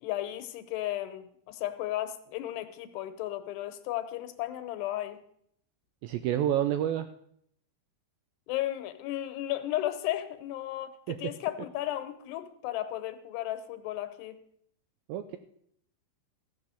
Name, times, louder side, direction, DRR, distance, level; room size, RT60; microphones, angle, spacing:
voice 1, 0.0-5.2 8.5-14.4, left 14 dB, 85° left, 3.0 m, -34 dB
voice 2, 6.0-7.1 11.1-11.2 15.1-15.4, right 11 dB, 80° right, 2.1 m, -28 dB
14.5 x 6.8 x 6.9 m
omnidirectional pair, 4.7 m